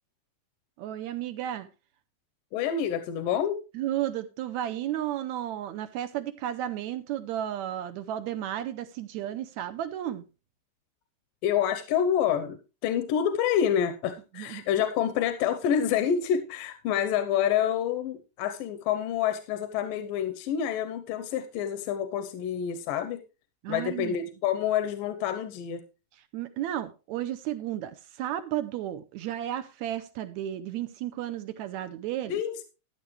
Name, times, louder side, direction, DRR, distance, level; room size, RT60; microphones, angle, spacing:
voice 1, 0.8-1.7 3.7-10.2 14.4-14.6 23.6-24.2 26.3-32.4, right 12 dB, 75° right, 1.7 m, -33 dB
voice 2, 2.5-3.6 11.4-12.6 12.8-23.2 23.7-25.8 32.3-32.6, left 9 dB, 85° left, 2.5 m, -27 dB
14.0 x 10.5 x 3.2 m
omnidirectional pair, 3.9 m